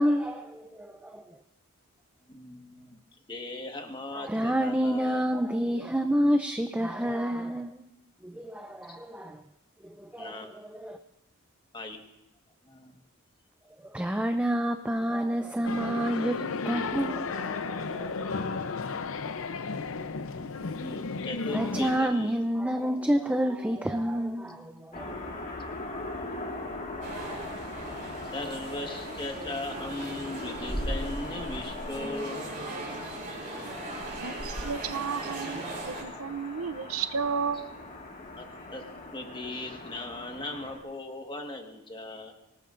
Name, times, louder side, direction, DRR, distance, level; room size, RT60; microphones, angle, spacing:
voice 1, 0.0-1.4 4.1-7.8 8.2-9.4 9.8-11.0 13.8-16.4 16.7-18.5 21.5-25.3, equal, 5° right, 6 dB, 0.5 m, -29 dB
voice 2, 2.3-3.0 3.3-5.3 8.9-9.0 10.2-10.5 11.7-12.0 12.6-13.0 20.1-22.4 28.3-32.5 37.5-37.6 38.4-38.5 38.7-38.8 39.1-42.3, left 2 dB, 20° left, 4 dB, 1.5 m, -38 dB
sound 1, 15.7-22.0, left 4 dB, 65° left, 0.7 m, -33 dB
sound 2, 24.9-40.8, left 2 dB, 35° left, 1.9 m, -41 dB
sound 3, 27.0-36.0, right 1 dB, 35° right, 5.3 m, -38 dB
voice 3, 34.2-37.7, right 6 dB, 70° right, 12 dB, 0.6 m, -33 dB
25.0 x 18.5 x 2.6 m, 0.92 s
head